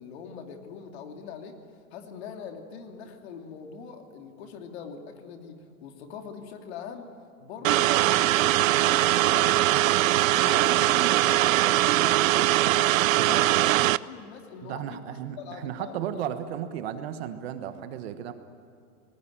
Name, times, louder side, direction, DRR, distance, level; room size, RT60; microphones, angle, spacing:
voice 1, 0.0-1.6 1.9-7.1 7.4-12.9 13.2-13.7 14.0-16.3, left 6 dB, 45° left, 4 dB, 2.7 m, -42 dB
sound 1, 7.6-14.0, right 16 dB, 65° right, 0.6 m, -21 dB
voice 2, 14.6-18.3, right 10 dB, 45° right, 9 dB, 1.4 m, -34 dB
26.0 x 19.5 x 9.0 m, 2.5 s
supercardioid pair, 175°, 43 cm